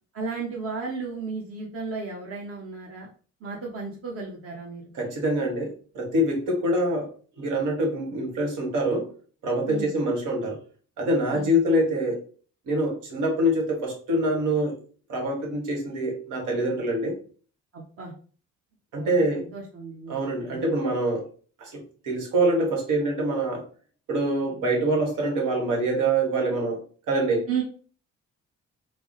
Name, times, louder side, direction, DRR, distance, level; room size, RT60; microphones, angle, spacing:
voice 1, 0.1-3.1 3.4-4.9 9.7-10.0 11.3-11.6 17.7-18.1 18.9-20.6 27.5-27.6, right 5 dB, 50° right, -1 dB, 0.9 m, -34 dB
voice 2, 4.9-7.1 7.4-9.1 9.4-10.6 11.0-12.2 12.7-14.8 15.1-17.2 18.9-19.5 20.1-21.3 21.6-23.6 24.1-26.8 27.1-27.5, right 1 dB, 85° right, 1 dB, 1.3 m, -25 dB
3.4 x 2.0 x 3.8 m, 0.41 s
cardioid pair, 90°, 30 cm